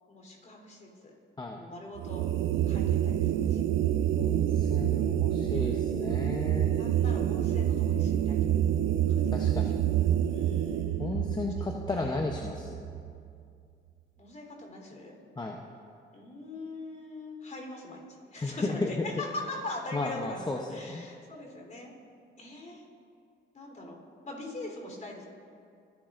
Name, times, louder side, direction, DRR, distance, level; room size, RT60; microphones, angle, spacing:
voice 1, 0.1-1.1 1.5-2.2 2.7-3.6 5.5-5.8 6.6-8.5 9.1-9.3 10.2-11.2 11.6-12.2 14.2-15.2 16.1-18.0 18.3-21.9 22.4-22.8 23.5-25.3, left 2 dB, 40° left, 0 dB, 3.7 m, -42 dB
sound 1, 2.0-13.3, right 11 dB, 75° right, 0.5 m, -27 dB
voice 2, 4.2-6.7 9.3-9.7 11.0-12.9 15.4-15.6 18.4-19.0 19.9-21.1, left 3 dB, 20° left, 1 dB, 0.8 m, -34 dB
25.0 x 10.5 x 2.6 m, 2.4 s
cardioid pair, 90°, 20 cm